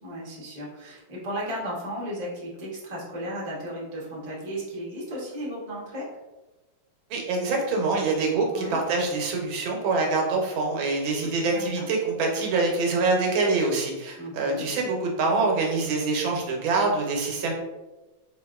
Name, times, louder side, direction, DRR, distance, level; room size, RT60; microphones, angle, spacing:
voice 1, 0.0-6.1 8.5-8.8 11.2-11.8 14.2-14.6, equal, 40° right, -5 dB, 0.5 m, -35 dB
voice 2, 7.1-17.5, right 3 dB, 80° right, 0 dB, 1.5 m, -25 dB
4.0 x 2.5 x 2.3 m, 1.1 s
omnidirectional pair, 2.2 m